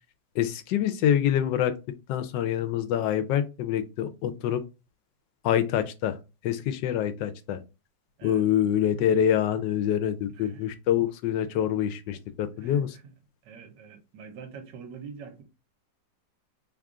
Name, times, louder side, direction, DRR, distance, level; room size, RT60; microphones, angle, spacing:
voice 1, 0.3-1.8 2.1-4.6 5.4-7.6 8.2-13.0, left 10 dB, 85° left, 1.2 m, -26 dB
voice 2, 10.3-10.6 12.6-13.1 13.4-15.4, right 6 dB, 90° right, 1.4 m, -45 dB
3.3 x 2.4 x 3.6 m
omnidirectional pair, 1.9 m